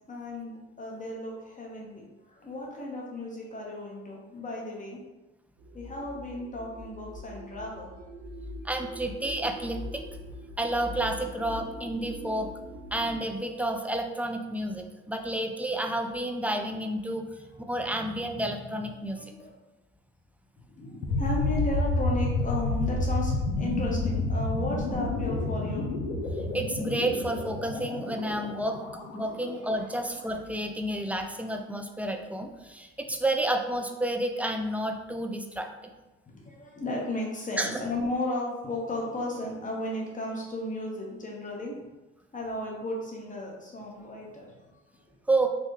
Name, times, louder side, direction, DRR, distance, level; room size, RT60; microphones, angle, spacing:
voice 1, 0.1-5.0 5.7-7.9 19.1-19.5 20.7-26.0 29.3-29.5 36.3-41.8 42.3-44.7, left 1 dB, 25° left, -2 dB, 1.0 m, -34 dB
sound 1, 5.6-13.2, equal, 90° right, 0.5 m, -42 dB
voice 2, 8.6-10.0 10.6-12.5 12.9-19.3 26.5-28.8 29.1-35.9 37.6-37.8 45.3-45.5, right 1 dB, 5° right, 4 dB, 0.3 m, -30 dB
sound 2, 21.0-29.9, left 2 dB, 85° left, 0.5 m, -30 dB
3.3 x 2.1 x 3.2 m, 1.1 s
hypercardioid pair, 55°, 30 cm